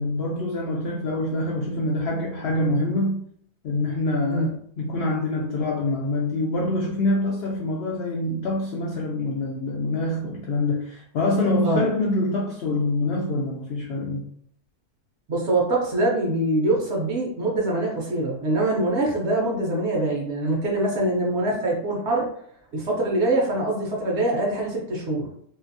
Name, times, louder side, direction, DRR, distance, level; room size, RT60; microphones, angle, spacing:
voice 1, 0.0-3.2 3.6-14.3, left 2 dB, 85° left, -2 dB, 0.5 m, -25 dB
voice 2, 15.3-22.3 22.7-25.3, right 2 dB, 60° right, -2 dB, 0.8 m, -24 dB
2.6 x 2.5 x 2.5 m, 0.65 s
omnidirectional pair, 1.6 m